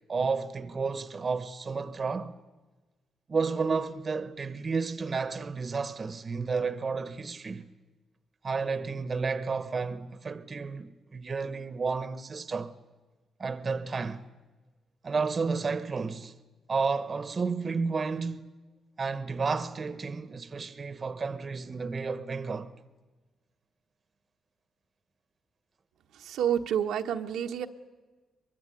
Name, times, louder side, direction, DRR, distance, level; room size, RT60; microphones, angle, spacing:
voice 1, 0.1-2.4 3.3-7.7 8.4-12.7 13.4-14.2 15.0-16.3 16.7-18.5 19.0-22.7, right 4 dB, 35° right, 1.2 m, -31 dB
voice 2, 26.2-27.7, right 9 dB, 85° right, 1.3 m, -29 dB
23.0 x 23.0 x 9.3 m
cardioid pair, 100°, 0 cm